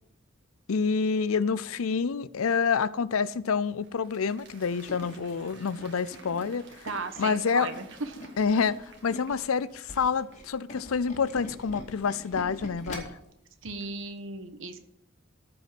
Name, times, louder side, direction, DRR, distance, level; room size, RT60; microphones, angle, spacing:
voice 1, 0.7-6.6 7.2-7.7 8.4-13.1, left 5 dB, 90° left, 17 dB, 0.5 m, -27 dB
Applause, 3.4-10.9, right 4 dB, 55° right, 2.0 m, -54 dB
Tools, 4.4-9.4 9.8-13.3 13.7-13.9 14.2-14.3, left 1 dB, 35° left, 2.3 m, -43 dB
voice 2, 6.8-8.1 13.6-14.8, right 3 dB, 70° right, 9 dB, 1.2 m, -35 dB
13.5 x 5.4 x 7.7 m, 0.77 s
head